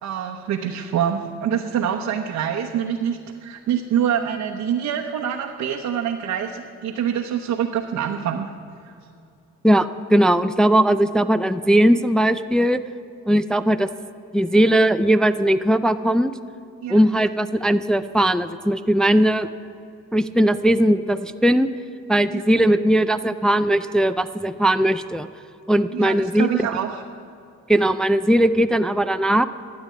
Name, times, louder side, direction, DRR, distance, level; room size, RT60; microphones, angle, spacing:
voice 1, 0.0-8.5 8.8-8.9 16.8-17.0 22.3-22.4 25.9-27.0, right 9 dB, 75° right, 2 dB, 0.9 m, -25 dB
voice 2, 9.6-12.8 13.3-13.9 14.3-16.3 16.9-19.5 20.1-21.7 22.1-25.3 25.7-26.5 27.7-29.5, right 1 dB, ahead, 10 dB, 0.3 m, -19 dB
12.5 x 8.9 x 8.4 m, 2.5 s
cardioid pair, 90°, 30 cm